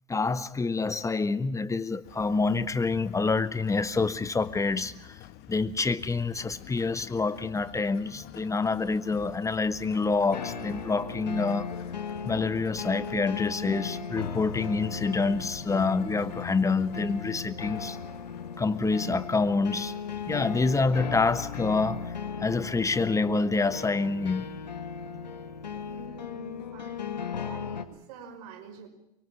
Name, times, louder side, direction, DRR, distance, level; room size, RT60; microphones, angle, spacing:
voice 1, 0.1-11.7 12.2-18.0 18.6-19.9 20.3-24.5, left 4 dB, 15° left, 1.6 m, -27 dB
sound 1, 2.0-20.9, left 13 dB, 50° left, 1.9 m, -48 dB
sound 2, 10.3-27.9, left 6 dB, 90° left, 1.8 m, -37 dB
voice 2, 25.7-28.9, right 5 dB, 65° right, 5.5 m, -47 dB
24.5 x 23.0 x 7.3 m
hypercardioid pair, 85°, 21 cm